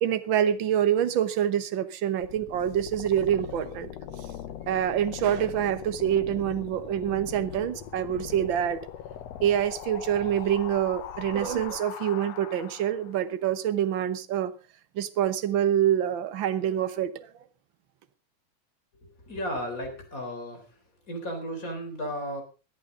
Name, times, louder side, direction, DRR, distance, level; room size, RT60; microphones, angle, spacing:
voice 1, 0.0-3.9 4.7-8.8 9.4-14.5 14.9-17.3, right 10 dB, 65° right, 12 dB, 1.2 m, -26 dB
sound 1, 2.2-13.2, left 10 dB, 65° left, 1.9 m, -40 dB
voice 2, 19.3-20.8 21.1-22.4, equal, 25° left, 4 dB, 4.1 m, -34 dB
20.0 x 11.5 x 3.9 m, 0.32 s
omnidirectional pair, 3.6 m